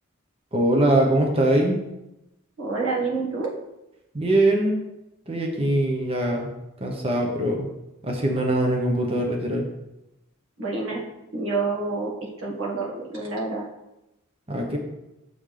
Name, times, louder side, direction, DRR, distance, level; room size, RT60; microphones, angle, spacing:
voice 1, 0.5-1.8 4.1-4.7 5.3-6.5 6.8-7.7 8.0-9.7 14.5-14.8, right 1 dB, 30° right, 1 dB, 1.0 m, -22 dB
voice 2, 2.6-3.5 10.6-11.1 11.3-13.6, right 3 dB, 80° right, -3 dB, 1.7 m, -28 dB
7.1 x 5.7 x 3.4 m, 0.93 s
head